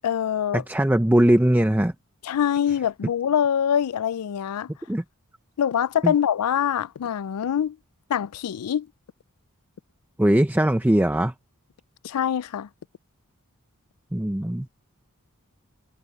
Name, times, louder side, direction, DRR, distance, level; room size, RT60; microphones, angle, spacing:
voice 1, 0.0-0.6 2.2-4.7 5.6-7.8 8.1-8.9 12.0-12.7, left 9 dB, 90° left, 0.4 m, -24 dB
voice 2, 0.5-1.9 4.9-5.0 6.0-6.1 10.2-11.3 14.1-14.7, right 1 dB, 10° right, 0.6 m, -20 dB
head